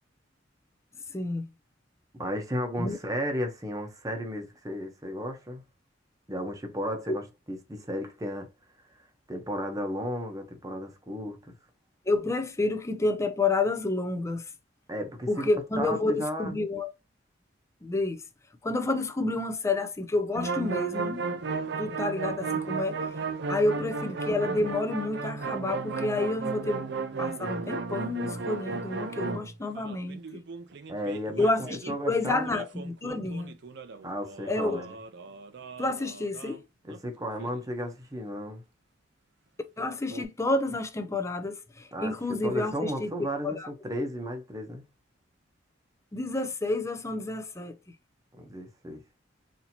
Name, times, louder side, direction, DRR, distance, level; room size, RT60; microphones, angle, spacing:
voice 1, 1.1-1.5 2.8-3.0 7.1-7.2 12.1-14.4 15.3-16.9 17.8-18.2 18.6-21.2 21.8-23.0 23.5-26.8 27.2-30.2 31.4-33.5 34.5-34.8 35.8-36.6 39.8-43.7 46.1-47.7, left 2 dB, 15° left, 0.5 m, -29 dB
voice 2, 2.1-5.6 6.3-8.5 9.3-11.5 14.9-15.5 15.8-16.5 30.9-31.5 31.9-32.5 34.0-35.0 36.8-38.6 41.9-42.1 42.4-44.8 48.4-49.0, equal, 20° right, 0.9 m, -34 dB
sound 1, 20.3-32.0 32.5-36.6 36.9-37.0 37.2-37.6 40.1-40.2, right 4 dB, 60° right, 0.5 m, -35 dB
4.2 x 2.8 x 2.8 m
head